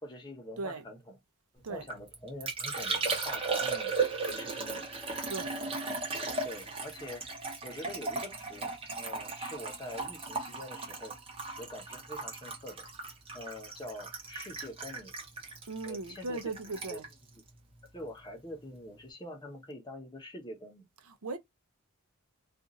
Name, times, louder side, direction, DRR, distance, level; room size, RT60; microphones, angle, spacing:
voice 1, 0.0-1.1 1.7-3.9 4.3-4.9 5.6-5.7 6.4-7.3 7.6-11.2 11.6-12.9 13.3-15.2 15.8-16.4 16.9-17.0 17.9-20.9, left 1 dB, 20° left, 0.8 m, -45 dB
Liquid, 1.7-18.3 18.5-19.1, right 4 dB, 25° right, 0.9 m, -36 dB
voice 2, 15.7-17.1 21.0-21.4, right 3 dB, 80° right, 0.6 m, -38 dB
2.5 x 2.5 x 3.9 m
head